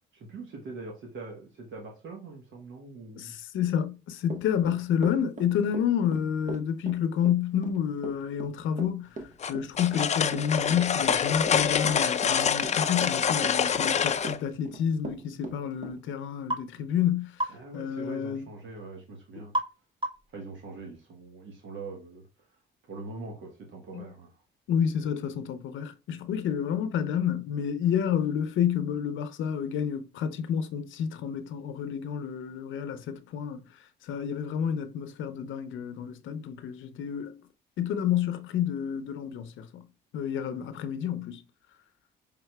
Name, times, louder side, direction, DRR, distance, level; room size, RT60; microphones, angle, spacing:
voice 1, 0.1-3.3 17.5-19.5 20.3-22.3 22.8-24.4, right 3 dB, 70° right, 1.2 m, -42 dB
voice 2, 3.2-9.1 9.5-17.3 17.7-18.5 23.9-24.0 24.7-33.6 34.0-37.4 37.8-39.9 40.1-41.4, left 8 dB, 80° left, 0.6 m, -29 dB
Run / Walk footsteps, 4.3-16.0, right 3 dB, 40° right, 1.1 m, -39 dB
sound 1, 9.4-14.4, left 7 dB, 35° left, 0.4 m, -26 dB
sound 2, 16.5-16.7 17.4-17.6 19.5-19.8 20.0-20.4, right 1 dB, 25° right, 1.9 m, -30 dB
5.7 x 3.6 x 2.2 m
cardioid pair, 90°, 20 cm